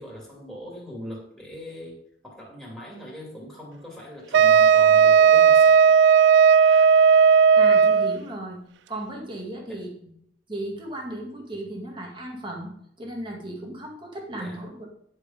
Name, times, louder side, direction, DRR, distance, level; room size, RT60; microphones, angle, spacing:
voice 1, 0.0-2.0 2.2-5.9 9.7-9.8 14.4-14.6, equal, 5° right, -4 dB, 2.8 m, -41 dB
Wind instrument woodwind instrument, 4.3-8.2, right 6 dB, 70° right, 0.3 m, -15 dB
voice 2, 7.6-8.6 8.9-10.1 10.5-12.7 13.0-14.9, right 1 dB, 25° right, -1 dB, 2.2 m, -35 dB
10.5 x 6.6 x 5.2 m, 0.69 s
head